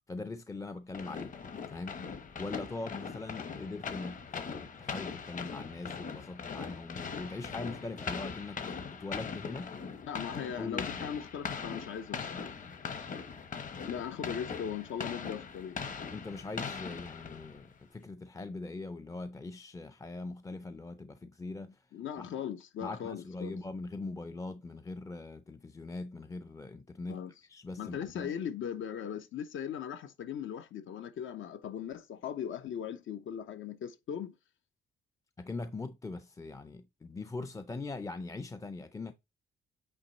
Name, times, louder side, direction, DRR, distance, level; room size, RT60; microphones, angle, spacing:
voice 1, 0.1-1.4 1.7-2.0 2.4-8.6 8.9-9.7 10.6-11.1 16.1-21.8 22.2-22.3 22.8-28.3 35.4-39.1, left 3 dB, 15° left, 0.5 m, -41 dB
sound 1, 0.9-17.7, left 5 dB, 40° left, 1.1 m, -41 dB
voice 2, 10.0-12.5 13.9-16.0 21.9-23.6 27.1-27.3 27.8-34.3, left 8 dB, 70° left, 0.9 m, -39 dB
8.7 x 3.1 x 4.0 m
cardioid pair, 140°, 21 cm